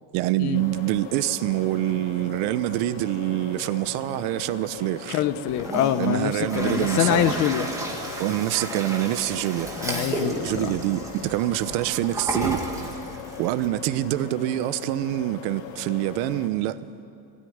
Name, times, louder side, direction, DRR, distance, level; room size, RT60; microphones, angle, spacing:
voice 1, 0.1-5.2 6.0-7.3 8.2-9.7 10.4-12.6 13.4-16.8, right 15 dB, 75° right, 0.8 m, -26 dB
sound 1, 0.5-16.5, left 8 dB, 90° left, 2.5 m, -40 dB
voice 2, 5.1-7.7 9.8-10.7, left 11 dB, 50° left, 1.0 m, -25 dB
Toilet flush, 5.5-13.7, right 1 dB, 10° right, 1.9 m, -32 dB
20.0 x 16.5 x 9.5 m
cardioid pair, 180°, 38 cm